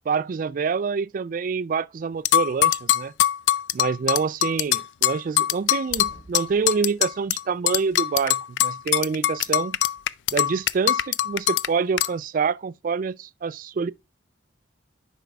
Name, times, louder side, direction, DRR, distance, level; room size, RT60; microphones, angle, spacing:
voice 1, 0.1-3.1 3.7-9.8 10.3-13.9, right 5 dB, 45° right, 0.3 m, -26 dB
sound 1, 2.3-7.4 7.7-11.7 12.0-12.1, left 12 dB, 80° left, 0.3 m, -22 dB
sound 2, 4.9-5.1 5.4-8.4 8.7-10.3, right 1 dB, 20° left, 2.2 m, -52 dB
10.0 x 5.2 x 2.3 m
head